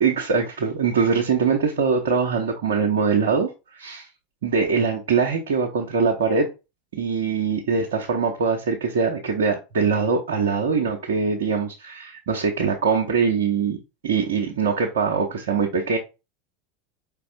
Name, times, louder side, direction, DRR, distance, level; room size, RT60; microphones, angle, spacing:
voice 1, 0.0-4.1 4.4-6.5 6.9-13.8 14.0-16.0, right 5 dB, 65° right, 0.7 m, -22 dB
5.1 x 3.4 x 2.3 m
figure-of-eight pair, 80°, 0 cm